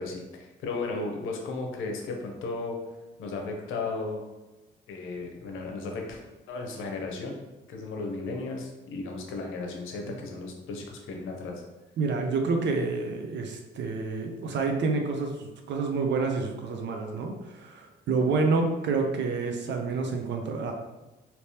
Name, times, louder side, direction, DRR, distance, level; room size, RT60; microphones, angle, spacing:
voice 1, 0.0-2.8 3.2-4.2 4.9-6.2 6.5-7.3 7.7-11.6, left 3 dB, 85° left, 2 dB, 0.7 m, -35 dB
voice 2, 12.0-20.7, right 4 dB, 65° right, 4 dB, 0.6 m, -28 dB
3.3 x 2.8 x 2.8 m, 1.1 s
cardioid pair, 90°, 20 cm